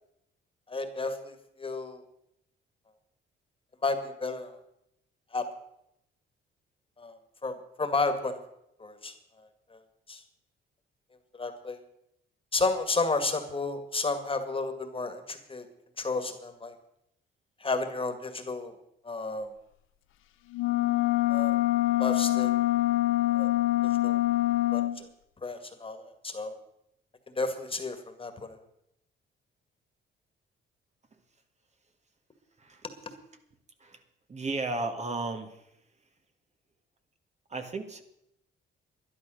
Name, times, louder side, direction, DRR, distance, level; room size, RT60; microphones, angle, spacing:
voice 1, 0.7-2.0 3.8-4.6 5.3-5.4 7.0-7.2 7.4-8.4 8.8-9.1 9.7-9.8 10.1-10.2 11.3-11.8 12.5-15.7 16.0-16.7 17.6-18.7 19.0-19.5 21.3-21.6 22.0-22.5 23.3-23.5 24.0-24.2 24.7-25.1 25.4-26.5 27.4-28.6, left 3 dB, 25° left, 8 dB, 2.0 m, -32 dB
sound 1, 20.5-25.0, left 16 dB, 85° left, 0.7 m, -25 dB
voice 2, 34.3-35.7 37.5-38.0, right 3 dB, 35° right, 6 dB, 1.6 m, -34 dB
12.0 x 11.0 x 6.4 m, 0.78 s
cardioid pair, 90°, 20 cm